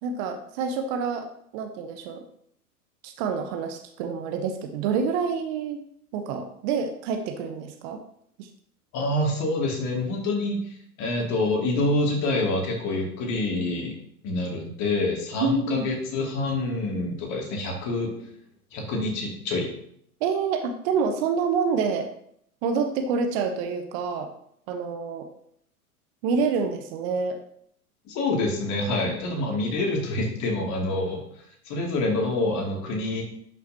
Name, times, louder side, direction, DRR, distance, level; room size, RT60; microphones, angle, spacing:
voice 1, 0.0-1.3 1.5-2.2 3.0-5.8 6.1-8.0 8.4-8.5 15.4-15.9 20.2-22.1 22.6-24.3 24.7-25.3 26.2-27.4, right 5 dB, 45° right, 7 dB, 1.0 m, -27 dB
voice 2, 8.9-10.6 11.0-13.9 14.2-18.1 18.7-19.7 28.1-31.2 31.6-33.2, left 2 dB, 40° left, 0 dB, 2.5 m, -26 dB
11.0 x 5.8 x 2.8 m, 0.69 s
figure-of-eight pair, 95°, 45 cm